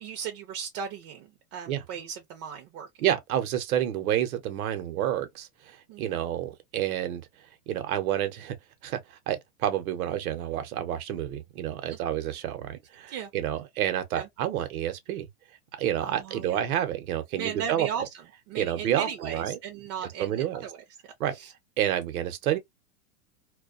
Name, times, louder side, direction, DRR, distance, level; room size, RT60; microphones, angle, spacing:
voice 1, 0.0-2.9 5.9-6.2 11.9-12.0 13.1-13.3 14.1-14.3 16.0-16.6 17.4-18.1 18.5-20.8 21.3-21.5, right 8 dB, 35° right, 0.5 m, -36 dB
voice 2, 3.0-7.3 7.7-8.6 8.8-15.3 15.8-17.9 18.6-19.6 20.0-20.6 21.2-21.3 21.8-22.6, right 11 dB, 75° right, 0.8 m, -29 dB
2.3 x 2.2 x 2.4 m
hypercardioid pair, 130°, 43 cm